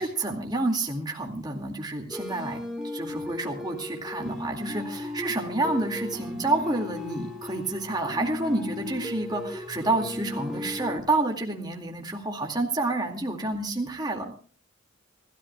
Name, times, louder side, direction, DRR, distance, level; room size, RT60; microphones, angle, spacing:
voice 1, 0.0-2.6 2.9-14.3, right 2 dB, 20° right, 1 dB, 2.2 m, -29 dB
sound 1, 2.1-11.0, left 2 dB, ahead, 3.2 m, -36 dB
27.5 x 14.0 x 2.3 m, 0.40 s
head